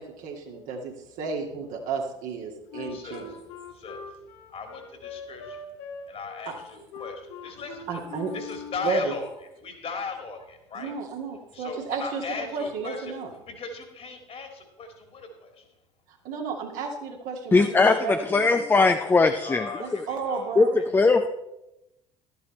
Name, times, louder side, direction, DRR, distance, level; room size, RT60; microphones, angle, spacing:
voice 1, 0.0-3.3 6.5-6.6 7.0-7.1 7.9-8.3 8.8-9.1 10.7-12.2 12.5-13.3 16.1-18.6 19.8-20.8, right 4 dB, 55° right, 2 dB, 1.9 m, -32 dB
Wind instrument woodwind instrument, 2.7-9.0, left 5 dB, 65° left, 1.2 m, -41 dB
voice 2, 2.8-3.3 3.7-4.1 4.5-5.7 6.1-8.0 8.3-9.3 9.6-10.9 11.5-13.1 13.5-15.7 19.4-20.8, left 4 dB, 40° left, 6 dB, 2.2 m, -38 dB
voice 3, 17.5-20.1 20.6-20.7 20.9-21.3, left 3 dB, 15° left, 7 dB, 0.6 m, -20 dB
12.5 x 8.1 x 4.2 m, 0.89 s
figure-of-eight pair, 60°, 16 cm